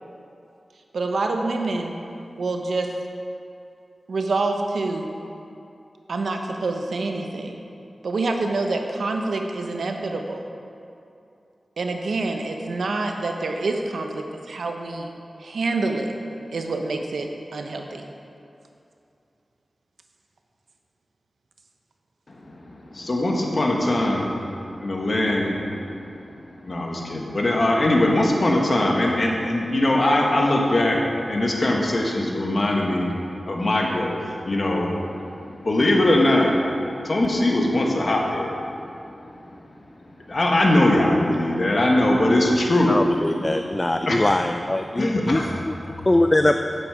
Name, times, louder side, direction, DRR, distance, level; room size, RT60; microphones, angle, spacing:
voice 1, 0.9-1.9 2.4-2.9 4.1-5.1 6.1-7.6 8.0-10.4 11.8-15.1 15.4-16.1 16.5-18.0, right 3 dB, 85° right, 4 dB, 0.8 m, -26 dB
voice 2, 22.9-24.5 24.7-26.2 26.6-33.0 33.4-34.9 35.3-36.5 37.0-38.6 39.3-39.4 40.3-42.9 44.1-44.2 45.0-45.2, left 1 dB, 60° left, -1 dB, 1.6 m, -21 dB
voice 3, 42.9-45.7 46.0-46.6, left 1 dB, 30° left, 6 dB, 0.4 m, -22 dB
9.5 x 7.6 x 5.0 m, 2.7 s
cardioid pair, 45°, 0 cm